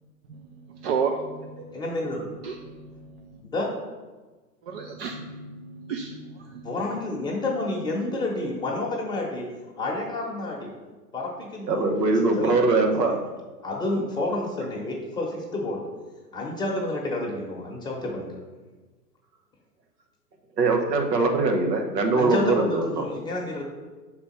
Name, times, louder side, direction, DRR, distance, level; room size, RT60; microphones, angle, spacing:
voice 1, 0.3-1.7 2.4-3.4 4.7-6.7, right 5 dB, 40° right, 3 dB, 0.6 m, -33 dB
voice 2, 1.7-2.2 3.4-3.7 6.6-9.5 9.8-10.7 11.1-11.9 12.4-12.6 13.0-13.1 13.6-15.8 16.3-18.4 22.2-23.6, left 2 dB, 10° left, -3 dB, 1.0 m, -29 dB
voice 3, 11.7-13.2 20.6-22.9, right 3 dB, 80° right, 3 dB, 1.3 m, -22 dB
5.6 x 4.3 x 5.7 m, 1.3 s
hypercardioid pair, 130°, 49 cm